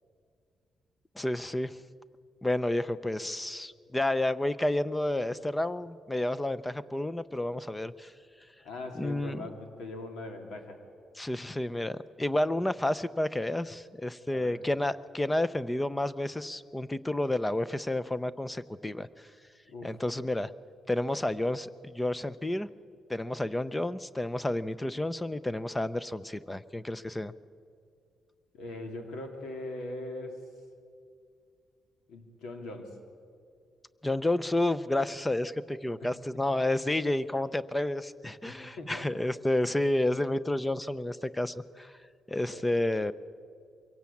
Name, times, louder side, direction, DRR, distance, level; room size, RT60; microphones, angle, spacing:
voice 1, 1.2-1.8 2.4-8.1 9.0-9.5 11.2-19.1 19.8-20.5 20.9-22.7 23.1-27.3 34.0-41.9 42.3-43.1, left 1 dB, 10° left, 15 dB, 0.5 m, -30 dB
voice 2, 8.6-10.8 14.3-14.6 19.7-20.0 28.5-30.4 32.1-32.9 36.0-36.1 36.5-36.6 38.4-39.2 42.5-42.8, left 2 dB, 90° left, 4 dB, 2.9 m, -41 dB
23.5 x 16.5 x 8.5 m, 2.3 s
cardioid pair, 150°, 0 cm